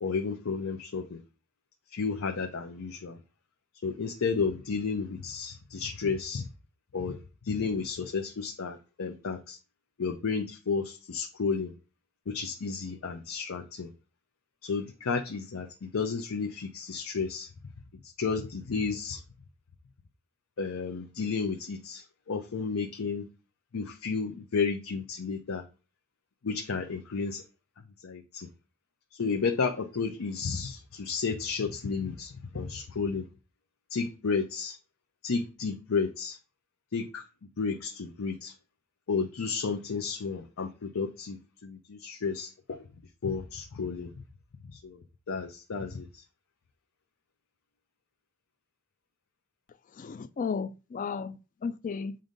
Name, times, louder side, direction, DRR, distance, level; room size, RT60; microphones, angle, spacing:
voice 1, 0.0-1.2 1.9-3.2 3.8-6.5 6.9-7.2 7.4-9.6 10.0-11.7 12.3-13.9 14.6-17.5 18.0-19.2 20.6-23.3 23.7-25.6 26.4-27.4 28.0-28.5 29.2-33.3 33.9-34.8 35.2-36.4 36.9-37.2 37.6-38.5 39.1-42.8 43.2-44.1 44.7-45.0 45.3-46.2, left 5 dB, 85° left, 0.6 m, -32 dB
voice 2, 49.9-52.2, left 5 dB, 40° left, 0.3 m, -34 dB
7.6 x 2.6 x 5.1 m
head